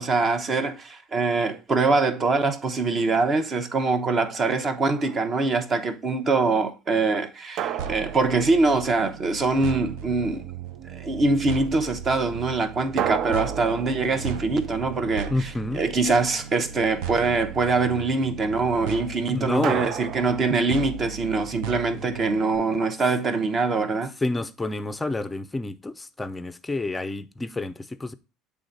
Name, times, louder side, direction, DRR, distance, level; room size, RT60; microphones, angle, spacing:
voice 1, 0.0-10.4 10.9-24.1, right 3 dB, 30° right, 0.9 m, -24 dB
sound 1, 4.9-5.5 7.6-9.4 13.0-15.6 19.6-21.3, right 10 dB, 55° right, 0.3 m, -33 dB
sound 2, 7.8-22.5, right 7 dB, 80° right, 0.7 m, -36 dB
voice 2, 15.3-15.9 19.3-19.9 24.2-28.1, left 2 dB, 15° left, 0.5 m, -29 dB
7.9 x 3.5 x 3.9 m
supercardioid pair, 120°, 0 cm